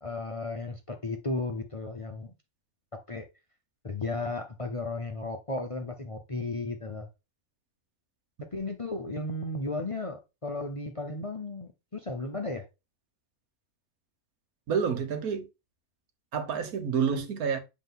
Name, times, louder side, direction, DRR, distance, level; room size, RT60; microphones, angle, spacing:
voice 1, 0.0-2.3 3.1-3.3 3.8-7.1 8.5-12.6, left 2 dB, 30° left, 0.6 m, -34 dB
voice 2, 14.7-15.5 16.3-17.6, right 6 dB, 90° right, 1.5 m, -28 dB
8.0 x 3.5 x 3.7 m
omnidirectional pair, 1.5 m